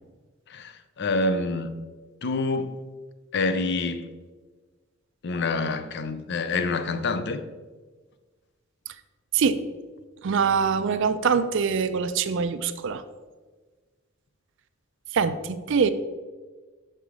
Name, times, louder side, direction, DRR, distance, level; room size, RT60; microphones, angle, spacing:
voice 1, 0.5-1.8 2.2-2.8 3.3-4.1 5.2-7.4, left 3 dB, 60° left, 0.5 m, -27 dB
voice 2, 10.2-13.0 15.1-15.9, right 6 dB, 65° right, 0.4 m, -24 dB
5.9 x 5.6 x 4.8 m
head